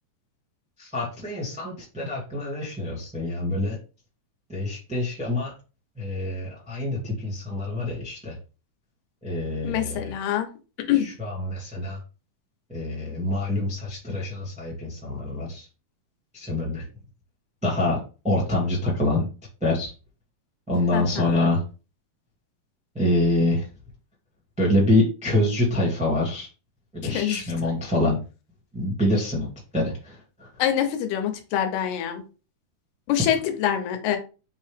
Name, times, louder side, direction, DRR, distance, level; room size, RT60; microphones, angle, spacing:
voice 1, 0.8-3.8 4.5-5.5 6.0-8.3 9.2-10.1 11.0-12.0 12.7-15.6 16.3-16.8 17.6-18.0 18.2-19.2 19.6-19.9 20.7-21.6 22.9-23.7 24.6-26.5 26.9-28.2 28.7-29.5 29.7-30.5, left 1 dB, 5° right, -4 dB, 1.0 m, -25 dB
voice 2, 9.6-10.5 10.9-11.1 20.9-21.5 27.0-27.7 30.6-32.2 33.1-34.2, left 10 dB, 85° left, 6 dB, 2.5 m, -25 dB
5.4 x 2.7 x 3.4 m, 0.33 s
omnidirectional pair, 3.8 m